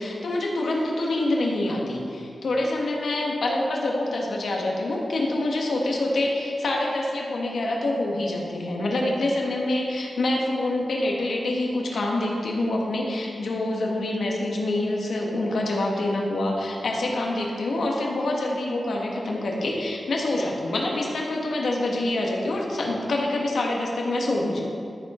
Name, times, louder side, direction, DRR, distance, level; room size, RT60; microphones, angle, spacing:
voice 1, 0.0-24.7, left 2 dB, 80° left, -1 dB, 1.4 m, -26 dB
13.0 x 4.6 x 4.3 m, 2.5 s
wide cardioid pair, 105°, 0 cm